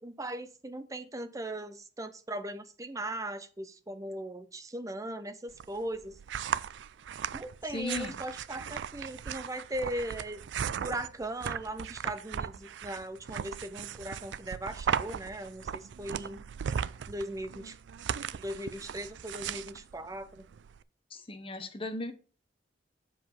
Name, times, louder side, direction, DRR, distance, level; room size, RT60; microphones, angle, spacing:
voice 1, 0.0-6.2 7.3-10.4 10.8-16.4 17.1-17.8 18.3-20.5, right 1 dB, 20° right, 0.7 m, -39 dB
sound 1, 5.5-20.8, right 8 dB, 75° right, 0.4 m, -37 dB
voice 2, 7.7-8.1 21.1-22.1, left 2 dB, 30° left, 1.0 m, -36 dB
7.4 x 5.0 x 5.3 m
head